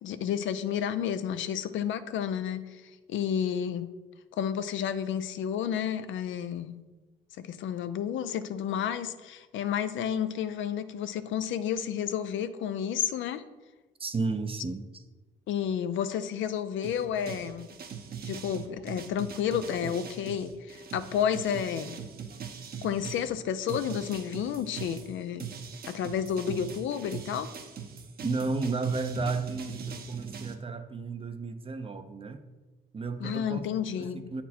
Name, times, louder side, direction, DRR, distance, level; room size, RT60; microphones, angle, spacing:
voice 1, 0.0-3.9 4.4-6.8 7.4-13.4 15.5-17.7 18.2-22.0 22.8-25.4 25.9-27.5 33.2-34.3, left 8 dB, 75° left, 11 dB, 0.5 m, -31 dB
voice 2, 14.0-14.9 28.2-32.4 32.9-33.6 33.9-34.4, right 3 dB, 30° right, 9 dB, 0.6 m, -32 dB
sound 1, 16.8-23.3 23.7-30.5, right 7 dB, 50° right, 0.8 m, -41 dB
8.1 x 4.3 x 4.3 m, 1.2 s
cardioid pair, 90°, 20 cm